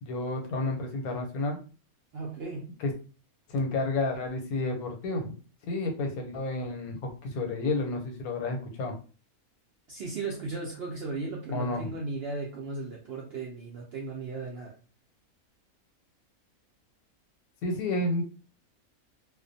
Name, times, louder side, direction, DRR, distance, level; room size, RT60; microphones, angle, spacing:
voice 1, 0.0-1.6 2.8-2.9 3.5-5.3 5.7-9.0 11.5-12.0 17.6-18.2, left 2 dB, 80° left, 3 dB, 1.1 m, -31 dB
voice 2, 2.1-2.7 9.9-14.8, right 3 dB, 70° right, -1 dB, 0.6 m, -36 dB
2.4 x 2.1 x 2.6 m, 0.35 s
omnidirectional pair, 1.5 m